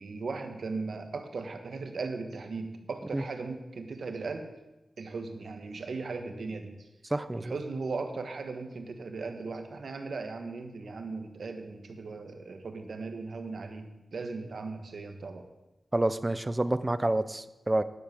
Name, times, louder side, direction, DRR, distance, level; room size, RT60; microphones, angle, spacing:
voice 1, 0.0-4.5 5.0-6.9 7.3-15.5, right 4 dB, 75° right, 6 dB, 1.3 m, -37 dB
voice 2, 7.1-7.5 15.9-17.8, right 1 dB, 20° right, 13 dB, 0.6 m, -28 dB
10.5 x 7.3 x 6.5 m, 1.0 s
wide cardioid pair, 90°, 0 cm